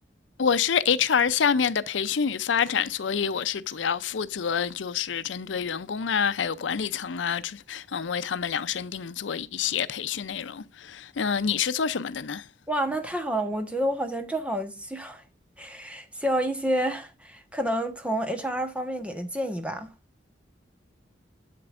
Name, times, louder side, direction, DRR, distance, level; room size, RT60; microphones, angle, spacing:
voice 1, 0.4-12.4, left 7 dB, 85° left, 0.6 m, -27 dB
voice 2, 12.7-15.2 15.6-19.9, right 1 dB, 5° right, 1.1 m, -29 dB
7.8 x 7.6 x 2.5 m
head